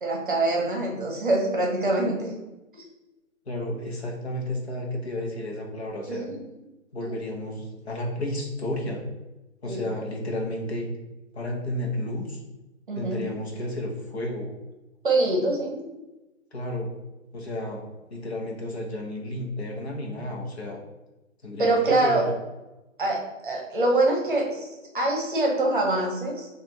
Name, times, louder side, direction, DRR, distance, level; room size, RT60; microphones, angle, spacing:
voice 1, 0.0-2.3 2.7-2.9 6.1-6.3 7.0-7.1 9.6-9.8 12.9-13.2 15.0-15.8 21.6-22.3 23.0-26.5, right 2 dB, 40° right, -1 dB, 0.9 m, -24 dB
voice 2, 3.5-6.3 6.9-9.0 9.6-10.9 11.3-12.4 13.0-14.5 16.5-16.9 17.3-17.8 18.1-20.8 21.4-21.8 22.0-22.3, left 1 dB, 50° left, 1 dB, 0.9 m, -32 dB
4.9 x 2.5 x 3.0 m, 1.0 s
hypercardioid pair, 175°, 40 cm